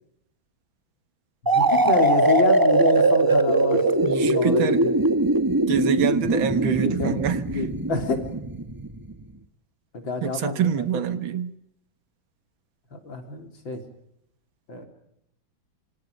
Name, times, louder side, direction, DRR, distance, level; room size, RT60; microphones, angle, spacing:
voice 1, 1.4-5.0 6.6-7.2 7.5-8.3 9.9-11.0 12.9-13.8 14.7-14.9, left 2 dB, 75° left, 5 dB, 4.4 m, -28 dB
sound 1, 1.5-9.1, right 2 dB, 15° right, 1.1 m, -21 dB
voice 2, 4.0-4.8 5.7-7.4 10.2-11.5, right 8 dB, 85° right, 12 dB, 2.2 m, -25 dB
27.0 x 25.5 x 5.3 m, 0.77 s
omnidirectional pair, 2.1 m